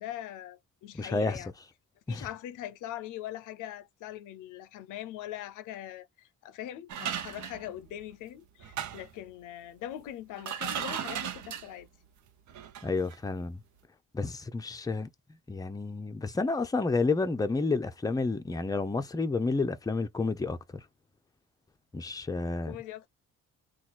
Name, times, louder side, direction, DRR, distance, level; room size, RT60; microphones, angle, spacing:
voice 1, 0.0-1.5 2.1-11.9 22.6-23.1, left 12 dB, 85° left, 0.6 m, -42 dB
voice 2, 0.9-1.4 2.1-2.3 12.8-13.6 14.1-15.1 15.5-20.6 21.9-22.8, left 3 dB, 10° left, 0.5 m, -30 dB
sound 1, 6.9-8.1 8.6-9.2 10.1-10.2 10.4-11.8 12.5-12.9 13.1-13.2, right 9 dB, 70° right, 0.8 m, -36 dB
3.0 x 2.4 x 4.1 m
cardioid pair, 90°, 30 cm